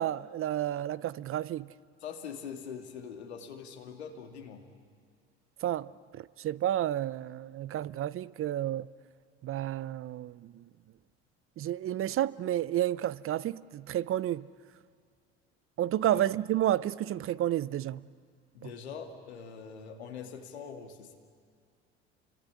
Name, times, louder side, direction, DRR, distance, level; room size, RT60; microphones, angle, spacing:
voice 1, 0.0-1.7 5.6-8.9 9.4-10.6 11.6-14.5 15.8-18.0, right 12 dB, 45° right, 0.7 m, -31 dB
voice 2, 2.0-4.6 16.1-16.2 18.5-21.1, left 6 dB, 90° left, 2.5 m, -43 dB
29.0 x 24.0 x 8.5 m
hypercardioid pair, 70°, 32 cm